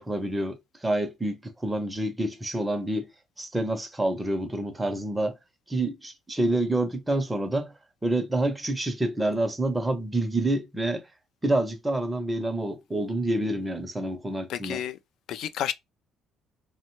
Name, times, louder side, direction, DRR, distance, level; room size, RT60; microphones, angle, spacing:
voice 1, 0.0-3.1 3.4-5.4 5.7-7.7 8.0-11.1 11.4-14.8, right 1 dB, 10° right, 0.5 m, -28 dB
voice 2, 14.5-15.0 15.3-15.7, left 10 dB, 60° left, 0.3 m, -30 dB
3.0 x 2.1 x 3.0 m
cardioid pair, 150°, 0 cm